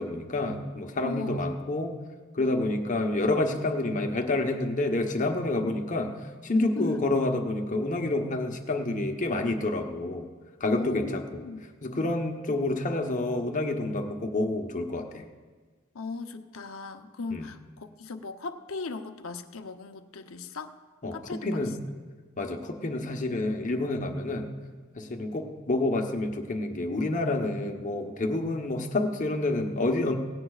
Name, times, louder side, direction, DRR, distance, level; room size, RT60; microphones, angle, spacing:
voice 1, 0.0-2.0 2.3-6.1 6.4-10.2 10.6-11.4 11.8-15.3 17.3-17.5 21.0-21.8 22.4-24.5 25.0-30.2, left 2 dB, 35° left, 4 dB, 1.1 m, -28 dB
voice 2, 1.0-1.5 5.6-5.7 6.8-7.0 10.7-11.6 15.9-20.7 21.1-21.7, left 3 dB, 70° left, 7 dB, 0.8 m, -37 dB
18.0 x 17.0 x 2.4 m, 1.5 s
head